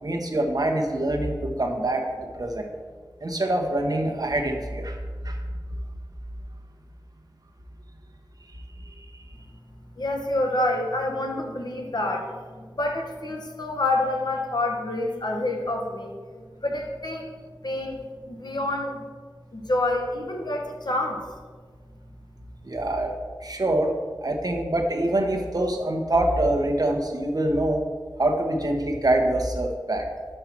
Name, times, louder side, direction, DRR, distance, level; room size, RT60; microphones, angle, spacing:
voice 1, 0.0-2.7 3.2-5.0 5.2-5.4 22.6-23.1 23.4-23.9 24.2-27.8 28.2-30.1, right 1 dB, 55° right, 3 dB, 1.0 m, -25 dB
voice 2, 10.0-16.1 16.6-19.0 19.5-21.2, left 2 dB, 65° left, 2 dB, 1.1 m, -28 dB
5.6 x 5.4 x 5.9 m, 1.5 s
wide cardioid pair, 65°, 8 cm